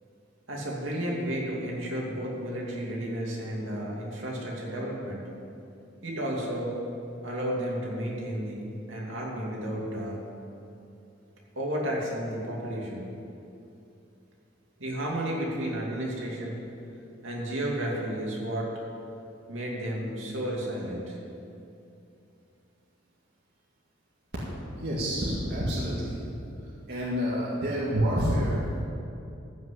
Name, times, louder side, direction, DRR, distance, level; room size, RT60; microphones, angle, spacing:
voice 1, 0.5-5.2 6.0-6.8 7.2-10.2 11.5-13.0 14.8-16.6 17.2-18.7 19.5-21.2, right 1 dB, 70° right, -3 dB, 2.7 m, -32 dB
voice 2, 24.8-26.4 26.9-28.8, equal, 55° right, -7 dB, 2.1 m, -28 dB
14.5 x 6.1 x 8.4 m, 2.7 s
head